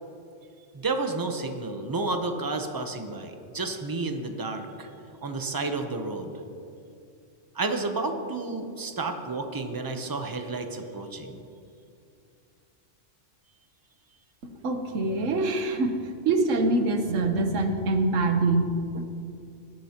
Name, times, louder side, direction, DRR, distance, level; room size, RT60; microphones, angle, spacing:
voice 1, 0.7-4.9 5.2-6.3 7.5-11.4, right 3 dB, 20° right, 5 dB, 0.7 m, -31 dB
voice 2, 14.4-16.0 16.2-19.0, right 2 dB, 85° right, 6 dB, 1.3 m, -25 dB
17.5 x 12.0 x 2.9 m, 2.5 s
omnidirectional pair, 1.3 m